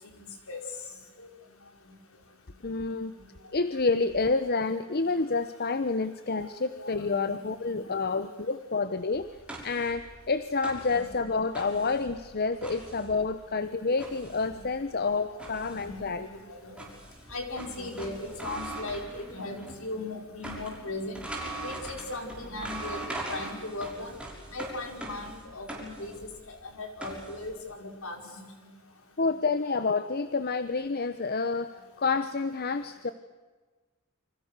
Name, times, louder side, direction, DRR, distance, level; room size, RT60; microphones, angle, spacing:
voice 1, 0.1-0.6 1.2-1.3 1.9-2.0 6.3-6.5 6.7-8.2 10.9-11.1 11.7-11.9 14.5-14.6 15.7-16.1 16.5-16.9 17.3-21.2 21.6-24.1 24.5-28.7, left 2 dB, 65° left, 3 dB, 5.3 m, -38 dB
voice 2, 2.6-3.2 3.5-9.3 9.6-16.3 29.2-33.1, left 4 dB, 45° left, 12 dB, 0.9 m, -29 dB
sound 1, 9.1-19.9 20.1-27.5, right 2 dB, 5° right, 5.9 m, -42 dB
29.5 x 25.5 x 6.7 m, 1.3 s
head